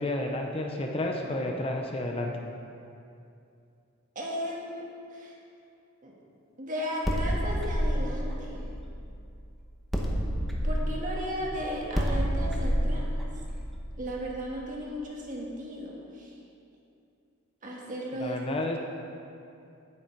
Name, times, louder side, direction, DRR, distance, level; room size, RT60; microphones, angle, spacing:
voice 1, 0.0-2.3 18.2-18.8, left 1 dB, 25° left, 1 dB, 0.7 m, -31 dB
voice 2, 4.1-4.8 5.1-5.3 6.0-6.1 6.6-8.6 10.6-13.1 14.0-16.3 17.6-18.4, equal, 40° right, -3 dB, 1.7 m, -35 dB
sound 1, 7.0-9.4 9.9-14.6, equal, ahead, 1.0 m, -29 dB
9.2 x 8.9 x 4.5 m, 2.6 s
head